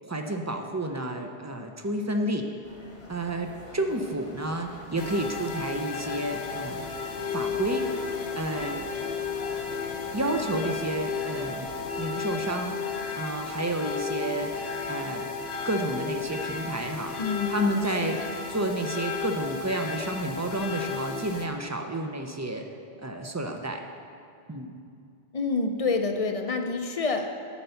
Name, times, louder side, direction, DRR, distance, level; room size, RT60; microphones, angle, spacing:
voice 1, 0.0-2.5 3.1-6.9 7.3-8.9 9.7-9.8 10.1-11.7 12.0-15.3 15.6-17.2 17.5-18.2 18.5-22.7 23.0-23.8 24.5-24.7, right 1 dB, 25° right, 4 dB, 0.4 m, -31 dB
sound 1, 2.6-12.3, left 1 dB, 80° left, 1.9 m, -47 dB
sound 2, 5.0-21.5, left 5 dB, 60° left, 0.9 m, -33 dB
voice 2, 17.2-18.3 25.3-27.3, left 4 dB, 45° left, 5 dB, 0.6 m, -28 dB
11.5 x 4.5 x 6.9 m, 2.4 s
omnidirectional pair, 1.1 m